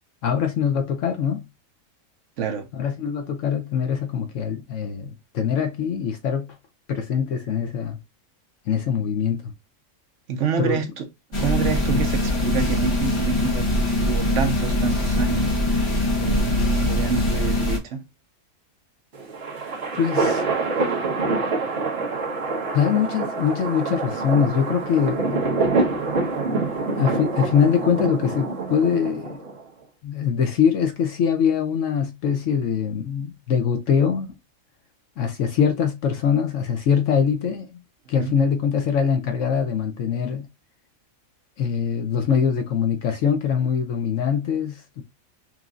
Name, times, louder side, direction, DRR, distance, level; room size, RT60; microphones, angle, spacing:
voice 1, 0.2-1.4 2.7-6.5 6.9-8.0 8.7-9.5 10.6-10.8 20.0-20.4 22.7-25.4 26.8-29.4 30.0-34.3 35.2-37.8 38.1-40.4 41.6-45.0, left 7 dB, 70° left, 1.0 m, -23 dB
voice 2, 2.4-2.7 10.3-11.1 11.4-13.7 14.0-18.0 38.1-38.4, right 6 dB, 65° right, 1.1 m, -28 dB
sound 1, 11.3-17.8, left 1 dB, 25° left, 0.9 m, -22 dB
sound 2, 19.1-29.6, right 3 dB, 50° right, 1.4 m, -26 dB
6.0 x 2.7 x 2.3 m
omnidirectional pair, 1.4 m